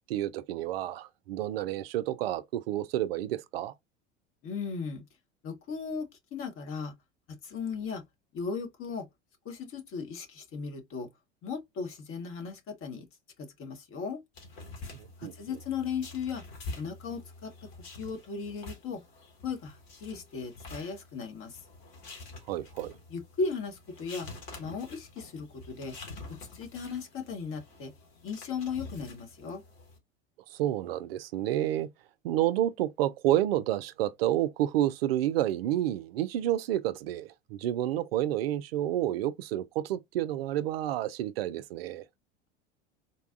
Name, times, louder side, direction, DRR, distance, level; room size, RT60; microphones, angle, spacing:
voice 1, 0.1-3.7 15.0-15.6 22.5-22.9 30.5-31.9 32.2-42.1, right 13 dB, 60° right, 0.4 m, -30 dB
voice 2, 4.4-5.0 5.4-6.9 7.4-8.0 8.3-9.0 9.4-11.1 11.4-13.1 13.4-14.2 15.2-16.4 16.8-17.5 18.0-19.0 19.4-21.6 23.1-24.3 24.6-26.0 26.5-27.9 28.2-29.6, left 5 dB, 40° left, 1.2 m, -36 dB
sound 1, 14.3-30.0, left 3 dB, 55° left, 1.8 m, -47 dB
4.0 x 2.3 x 2.5 m
figure-of-eight pair, 75°, 34 cm